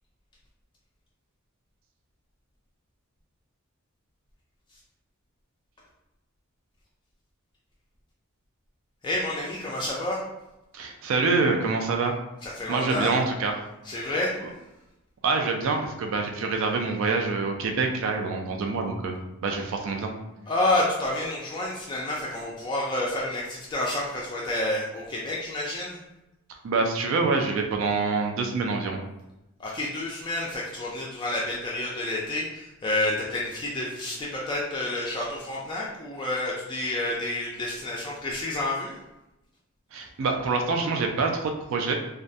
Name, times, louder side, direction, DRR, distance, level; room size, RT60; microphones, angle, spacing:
voice 1, 9.0-10.2 12.4-13.1 13.8-14.4 20.5-26.0 29.6-38.9, left 1 dB, 20° left, -4 dB, 0.3 m, -29 dB
voice 2, 10.7-12.2 12.7-13.5 15.2-20.1 26.6-29.0 39.9-42.0, right 4 dB, 65° right, 3 dB, 0.3 m, -26 dB
2.3 x 2.1 x 2.6 m, 0.94 s
head